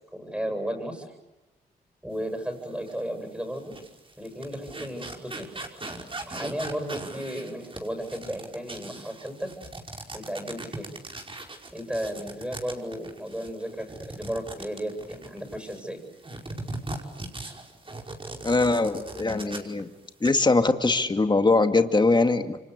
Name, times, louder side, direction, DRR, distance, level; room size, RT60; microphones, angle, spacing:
voice 1, 0.1-1.1 2.0-3.8 4.2-5.5 6.3-9.5 10.1-10.9 11.7-16.0, equal, 5° right, 2 dB, 7.6 m, -34 dB
sound 1, 2.9-3.0 3.6-15.8 16.2-19.8 20.1-20.3, right 2 dB, 30° right, 5.2 m, -39 dB
voice 2, 18.4-19.9 20.2-22.6, left 3 dB, 25° left, 7 dB, 2.3 m, -22 dB
28.5 x 25.5 x 8.3 m, 1.0 s
supercardioid pair, 55°, 17 cm